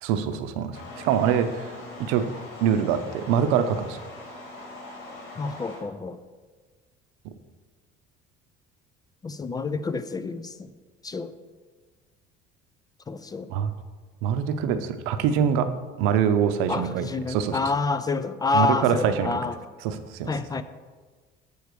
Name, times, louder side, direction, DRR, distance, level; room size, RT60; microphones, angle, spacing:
voice 1, 0.0-2.2 2.6-4.0 13.5-13.7 14.2-15.7 16.0-17.6 18.5-19.3 19.8-20.3, right 8 dB, 85° right, 10 dB, 0.7 m, -24 dB
sound 1, 0.7-5.8, left 2 dB, 65° left, 2.5 m, -42 dB
voice 2, 5.4-6.2 9.2-10.7 11.0-11.3 13.1-13.5 16.7-19.6 20.3-20.6, left 4 dB, 20° left, 12 dB, 0.4 m, -28 dB
7.1 x 4.7 x 6.7 m, 1.4 s
cardioid pair, 120°, 21 cm